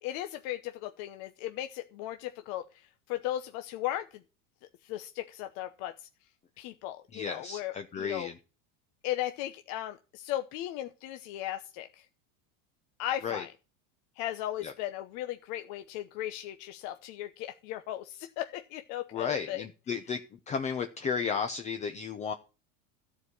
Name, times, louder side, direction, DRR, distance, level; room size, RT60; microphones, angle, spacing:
voice 1, 0.0-4.2 4.8-6.1 6.6-8.3 9.0-12.1 13.0-13.5 14.2-19.6, left 13 dB, 50° left, 7 dB, 0.8 m, -37 dB
voice 2, 7.1-8.3 13.2-13.4 14.6-14.7 19.1-20.2 20.5-22.3, left 6 dB, 20° left, 7 dB, 0.7 m, -33 dB
13.5 x 4.8 x 8.3 m, 0.33 s
supercardioid pair, 150°, 37 cm